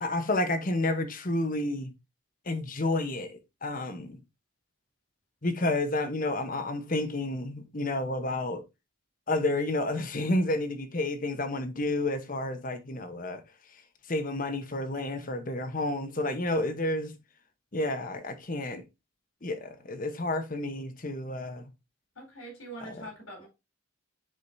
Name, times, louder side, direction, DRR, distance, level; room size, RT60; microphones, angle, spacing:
voice 1, 0.0-1.9 2.5-4.2 5.4-8.6 9.3-13.4 14.1-17.2 17.7-18.8 19.4-21.7 22.9-23.0, left 2 dB, 40° left, 1.0 m, -30 dB
voice 2, 22.1-23.5, right 1 dB, 85° left, 4.3 m, -43 dB
9.7 x 5.1 x 2.7 m
head